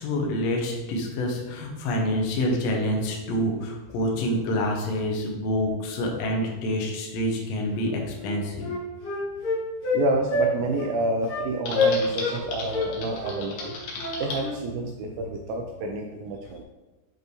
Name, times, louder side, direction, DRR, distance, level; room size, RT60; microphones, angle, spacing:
voice 1, 0.0-8.7, left 1 dB, 85° left, 0 dB, 1.5 m, -27 dB
Wind instrument woodwind instrument, 7.8-7.9 8.2-10.0 10.3-10.5 10.8-10.9 11.3-11.5 11.7-12.4 12.7-14.6, left 3 dB, 50° left, 1.7 m, -27 dB
voice 2, 9.9-13.8 14.2-16.6, right 2 dB, 85° right, 2 dB, 2.1 m, -29 dB
Typing, 11.7-14.4, left 3 dB, 65° left, 2.4 m, -35 dB
6.8 x 5.2 x 3.1 m, 1.1 s
omnidirectional pair, 4.5 m